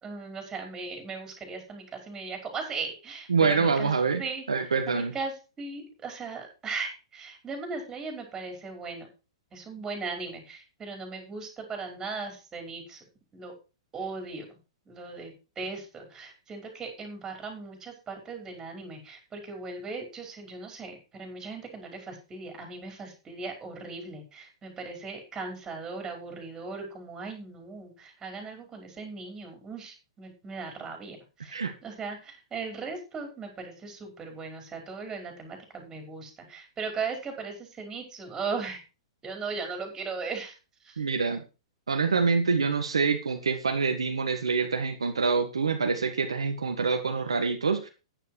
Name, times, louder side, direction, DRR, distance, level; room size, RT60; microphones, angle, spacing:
voice 1, 0.0-3.9 4.2-4.4 4.9-9.1 9.5-13.0 13.3-13.5 13.9-14.5 14.9-38.8 39.2-40.6 40.8-41.0, right 4 dB, 20° right, 3 dB, 5.4 m, -38 dB
voice 2, 3.3-4.2 4.5-5.1 31.5-31.7 41.0-41.4 41.9-47.9, right 5 dB, 85° right, 5 dB, 1.7 m, -26 dB
9.9 x 9.3 x 4.8 m, 0.31 s
hypercardioid pair, 115°, 3 cm